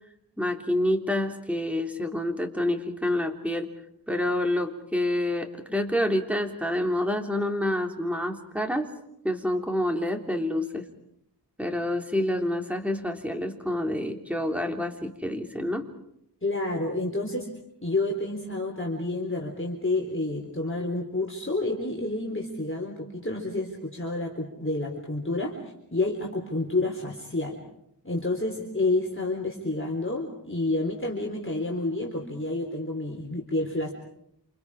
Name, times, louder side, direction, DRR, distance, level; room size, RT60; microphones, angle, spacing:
voice 1, 0.4-3.7 4.1-8.9 9.2-10.8 11.6-15.9, left 1 dB, 5° right, 3 dB, 3.5 m, -28 dB
voice 2, 16.4-17.5 17.8-25.5 25.9-27.6 28.0-33.9, left 2 dB, 30° left, -1 dB, 4.0 m, -29 dB
28.5 x 28.0 x 5.0 m, 0.76 s
wide cardioid pair, 50°, 41 cm